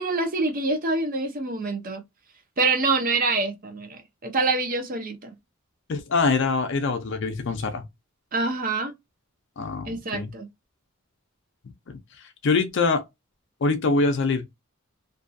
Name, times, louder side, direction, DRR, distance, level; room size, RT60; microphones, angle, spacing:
voice 1, 0.0-2.0 2.6-5.3 8.3-8.9 9.9-10.5, right 3 dB, 45° right, 0.7 m, -26 dB
voice 2, 5.9-7.8 9.6-10.3 11.9-12.0 12.4-13.0 13.6-14.4, left 3 dB, 60° left, 0.5 m, -24 dB
2.6 x 2.3 x 2.5 m
head